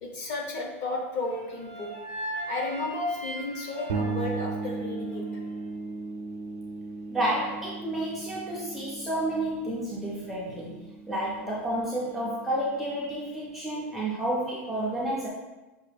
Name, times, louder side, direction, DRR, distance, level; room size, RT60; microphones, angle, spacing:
voice 1, 0.0-1.9 2.5-5.2, left 2 dB, 35° left, 0 dB, 0.7 m, -33 dB
sound 1, 1.3-5.5, right 1 dB, 50° left, 1.3 m, -39 dB
sound 2, 3.9-13.5, right 4 dB, 90° right, 0.5 m, -37 dB
voice 2, 7.1-10.8 11.1-15.3, right 1 dB, ahead, -7 dB, 0.3 m, -30 dB
5.5 x 2.2 x 3.2 m, 1.1 s
supercardioid pair, 170°, 8 cm